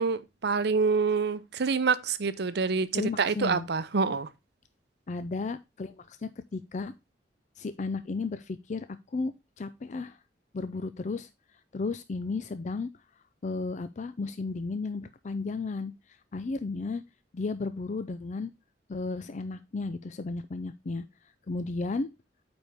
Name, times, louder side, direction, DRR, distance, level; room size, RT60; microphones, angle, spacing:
voice 1, 0.0-4.3, right 5 dB, 65° right, 0.6 m, -27 dB
voice 2, 2.9-3.7 5.1-6.9 7.6-10.2 10.5-11.3 11.7-12.9 13.4-15.9 16.3-17.0 17.3-18.5 18.9-21.0 21.5-22.1, left 3 dB, 45° left, 0.4 m, -34 dB
8.9 x 4.4 x 3.4 m
head